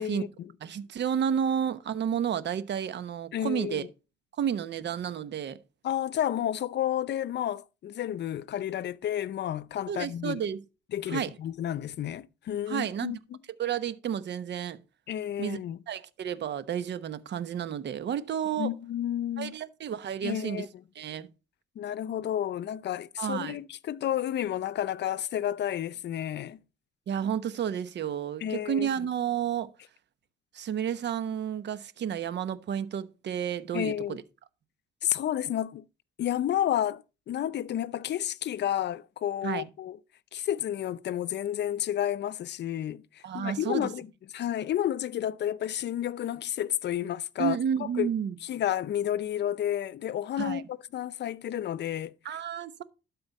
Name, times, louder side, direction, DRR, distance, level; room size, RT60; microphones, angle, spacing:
voice 1, 0.0-0.5 3.3-3.9 5.8-10.4 10.9-13.2 15.1-15.8 18.6-19.5 20.2-20.7 21.8-26.6 28.4-28.9 33.7-34.2 35.0-35.9 36.2-40.0 40.3-48.1 48.4-52.1, left 11 dB, 60° left, 0.6 m, -31 dB
voice 2, 0.6-3.9 4.4-5.6 9.9-10.6 11.1-11.3 12.7-13.2 13.6-14.8 15.4-15.6 15.9-18.7 19.4-20.7 20.9-21.3 23.2-23.6 27.1-29.7 30.5-34.2 39.4-39.6 43.2-43.9 47.4-48.4 50.4-50.6 52.2-52.8, right 8 dB, 60° right, 1.0 m, -31 dB
12.0 x 4.3 x 5.3 m
cardioid pair, 90°, 20 cm